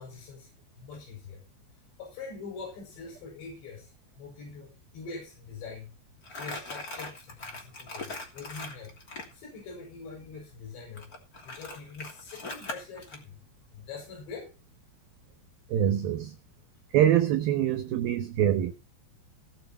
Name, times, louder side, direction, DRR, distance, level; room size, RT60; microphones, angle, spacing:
voice 1, 0.0-15.7 16.6-17.0, left 4 dB, 90° left, 8.5 m, -45 dB
Crumpling crinkling, 6.2-9.3 11.0-13.2, left 2 dB, 25° left, 2.8 m, -40 dB
voice 2, 15.7-16.4 16.9-18.7, right 10 dB, 70° right, 2.6 m, -24 dB
19.5 x 6.6 x 4.4 m
omnidirectional pair, 5.0 m